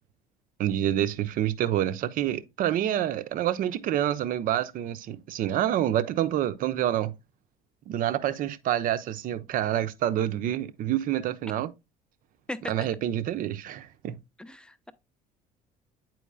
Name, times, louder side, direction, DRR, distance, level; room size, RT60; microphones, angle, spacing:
voice 1, 0.6-7.1 7.9-11.7 12.7-14.2, right 11 dB, 45° right, 0.6 m, -27 dB
voice 2, 14.4-14.9, left 1 dB, 5° left, 0.5 m, -38 dB
9.0 x 4.5 x 2.3 m
figure-of-eight pair, 55°, 20 cm